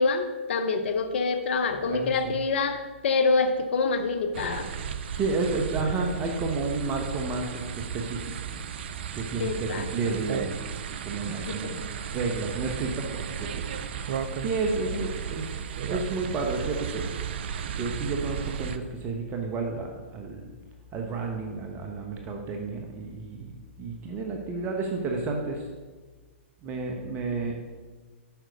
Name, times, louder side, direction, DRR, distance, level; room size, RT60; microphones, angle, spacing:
voice 1, 0.0-4.7 9.4-10.2 11.3-11.8 14.9-15.0, left 4 dB, 60° left, 8 dB, 0.8 m, -26 dB
voice 2, 1.8-2.3 5.2-8.5 9.1-10.6 10.9-11.7 12.1-17.1 17.8-20.6 20.9-25.7 26.6-27.6, right 3 dB, 25° right, 2 dB, 1.1 m, -31 dB
sound 1, 4.3-18.8, right 7 dB, 55° right, 0.6 m, -34 dB
9.0 x 6.3 x 5.2 m, 1.4 s
hypercardioid pair, 120°, 7 cm